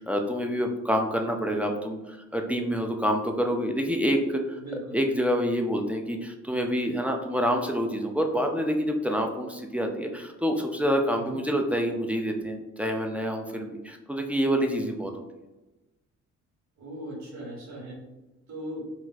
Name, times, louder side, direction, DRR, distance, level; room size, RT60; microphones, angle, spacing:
voice 1, 0.0-4.6 4.9-15.2, equal, 5° right, 2 dB, 0.3 m, -27 dB
voice 2, 4.6-5.0 11.1-11.4 16.8-17.9 18.5-18.8, equal, 65° right, -4 dB, 1.4 m, -38 dB
3.9 x 2.5 x 2.3 m, 1.0 s
cardioid pair, 90°, 30 cm